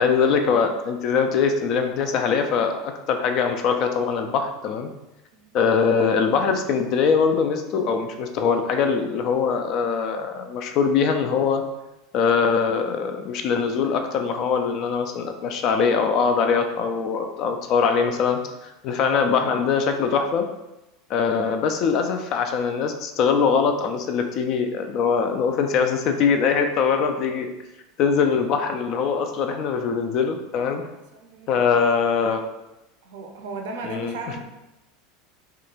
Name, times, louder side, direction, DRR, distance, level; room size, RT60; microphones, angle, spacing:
voice 1, 0.0-4.9 5.5-11.6 12.1-20.5 21.1-27.5 28.0-30.8 31.5-32.5 33.8-34.1, left 6 dB, 50° left, 6 dB, 0.3 m, -22 dB
voice 2, 30.8-31.7 33.0-34.4, right 3 dB, 65° right, 2 dB, 0.4 m, -36 dB
2.8 x 2.2 x 2.4 m, 0.94 s
figure-of-eight pair, 80°, 0 cm